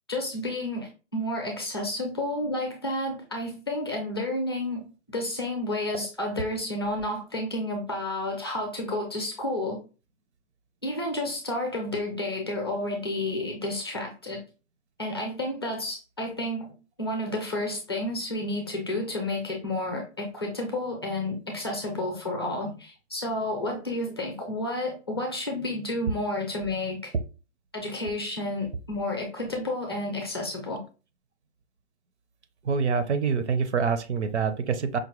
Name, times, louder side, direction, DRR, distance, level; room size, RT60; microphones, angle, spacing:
voice 1, 0.1-9.8 10.8-14.4 15.0-27.1 27.7-30.8, left 1 dB, 20° left, 1 dB, 0.5 m, -31 dB
voice 2, 32.6-35.0, right 5 dB, 65° right, 10 dB, 0.6 m, -26 dB
5.1 x 2.1 x 2.9 m, 0.33 s
hypercardioid pair, 170°, 37 cm